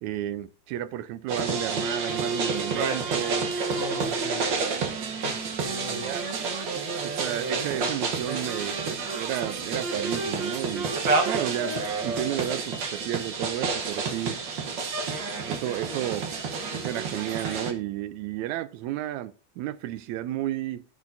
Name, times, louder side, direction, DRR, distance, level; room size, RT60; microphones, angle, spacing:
voice 1, 0.0-3.5 5.9-6.2 7.0-10.9 11.3-14.4 15.5-16.3 16.7-20.8, right 12 dB, 80° right, 1.9 m, -32 dB
sound 1, 1.3-17.7, right 4 dB, 60° right, 1.2 m, -29 dB
voice 2, 3.7-4.8 5.1-6.2, left 4 dB, 40° left, 2.8 m, -40 dB
13.5 x 6.2 x 2.6 m
omnidirectional pair, 3.4 m